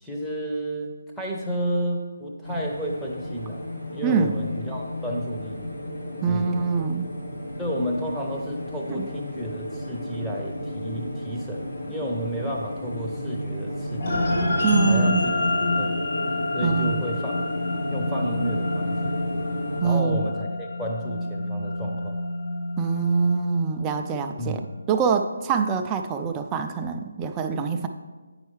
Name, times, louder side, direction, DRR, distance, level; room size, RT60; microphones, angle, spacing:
voice 1, 0.0-0.9 1.2-5.6 6.3-6.6 7.6-14.3 14.9-15.2 15.6-15.9 16.5-17.4 17.9-19.2 19.8-22.2 24.4-24.7, equal, ahead, -5 dB, 0.8 m, -31 dB
sound 1, 2.4-19.8, left 1 dB, 70° left, 1.8 m, -33 dB
voice 2, 4.0-4.4 6.2-7.1 8.9-9.1 14.6-15.3 16.6-17.1 19.8-20.3 22.8-24.6 24.9-27.9, right 6 dB, 15° right, 5 dB, 0.4 m, -25 dB
sound 2, 14.0-24.6, left 2 dB, 50° left, 1.9 m, -28 dB
8.2 x 5.5 x 3.2 m, 1.3 s
figure-of-eight pair, 160°, 0 cm